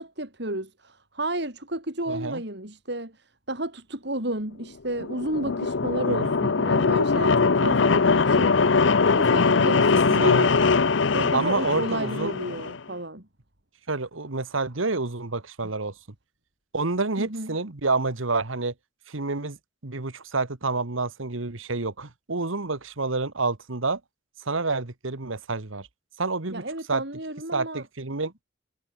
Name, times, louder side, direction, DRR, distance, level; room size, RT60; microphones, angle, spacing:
voice 1, 0.0-8.5 9.1-10.7 11.1-13.3 17.2-17.6 26.5-27.9, right 1 dB, 55° right, 4.9 m, -32 dB
voice 2, 2.1-2.4 6.1-6.3 10.2-10.6 11.3-12.3 13.9-15.9 16.7-18.7 19.1-19.6 19.8-24.0 24.4-25.9 26.2-26.6 26.9-27.0 27.5-28.3, right 3 dB, 85° right, 1.6 m, -28 dB
sound 1, 4.9-12.8, left 4 dB, 70° left, 0.7 m, -21 dB
head